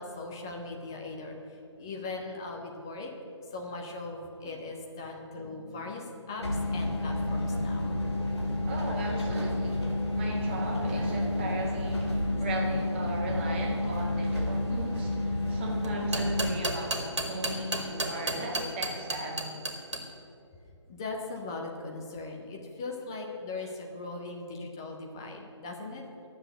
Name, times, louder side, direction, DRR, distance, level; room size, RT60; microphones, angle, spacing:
voice 1, 0.0-3.1 3.5-7.9 20.9-26.1, left 3 dB, 10° left, 1 dB, 0.4 m, -39 dB
sound 1, 6.4-16.6, left 1 dB, 60° left, 2.6 m, -30 dB
voice 2, 8.7-19.5 23.6-23.7, right 1 dB, 25° right, -1 dB, 1.7 m, -36 dB
sound 2, 15.8-20.0, right 2 dB, 65° right, 1.9 m, -31 dB
11.0 x 7.1 x 7.9 m, 2.6 s
figure-of-eight pair, 150°, 16 cm